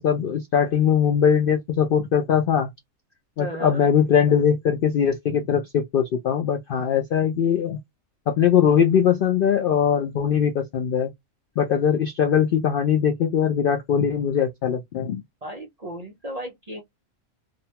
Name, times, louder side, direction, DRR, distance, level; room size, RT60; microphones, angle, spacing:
voice 1, 0.0-2.7 3.4-7.8 8.3-11.1 11.6-15.2, left 8 dB, 85° left, 0.4 m, -21 dB
voice 2, 3.4-3.8 15.4-16.8, right 1 dB, 50° right, 0.4 m, -34 dB
2.6 x 2.1 x 2.8 m
omnidirectional pair, 1.5 m